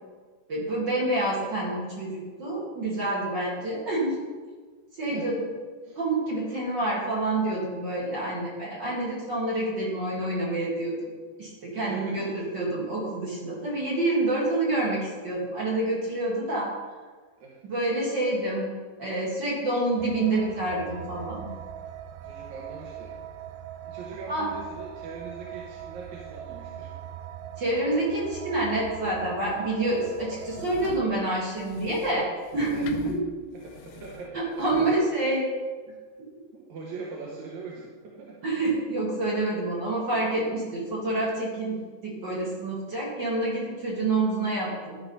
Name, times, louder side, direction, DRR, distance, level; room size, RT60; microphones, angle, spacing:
voice 1, 0.5-4.2 5.0-5.4 6.0-11.1 11.4-16.7 17.6-18.7 19.0-21.5 24.3-24.5 27.6-32.3 32.5-33.2 34.3-35.5 38.4-41.8 42.0-45.0, right 2 dB, 40° right, -5 dB, 2.0 m, -27 dB
voice 2, 11.7-12.4 17.4-17.6 22.2-23.1 23.8-26.9 30.4-30.6 32.7-33.1 33.5-35.3 36.5-38.4, right 4 dB, 65° right, -3 dB, 2.1 m, -41 dB
sound 1, 20.0-31.1, right 10 dB, 80° right, 2.0 m, -41 dB
sound 2, 30.0-35.0, left 7 dB, 80° left, 1.9 m, -42 dB
12.5 x 4.8 x 5.4 m, 1.5 s
omnidirectional pair, 4.2 m